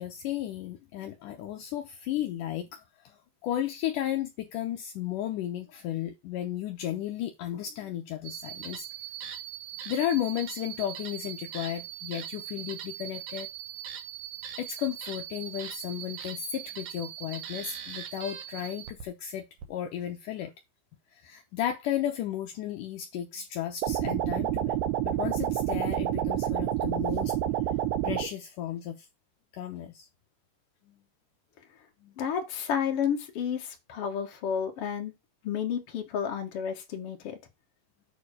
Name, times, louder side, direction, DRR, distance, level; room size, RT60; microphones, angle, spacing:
voice 1, 0.0-8.9 9.9-13.5 14.6-20.5 21.1-24.8 25.0-27.3 28.0-29.1 29.5-30.1 30.9-31.0 32.0-32.2, left 11 dB, 75° left, 1.9 m, -34 dB
sound 1, 8.2-19.1 19.6-19.7, right 10 dB, 60° right, 2.1 m, -41 dB
sound 2, 23.8-28.3, right 11 dB, 80° right, 2.7 m, -28 dB
voice 2, 32.2-35.1 35.4-37.4, left 7 dB, 45° left, 2.1 m, -31 dB
8.9 x 3.8 x 4.9 m
omnidirectional pair, 4.7 m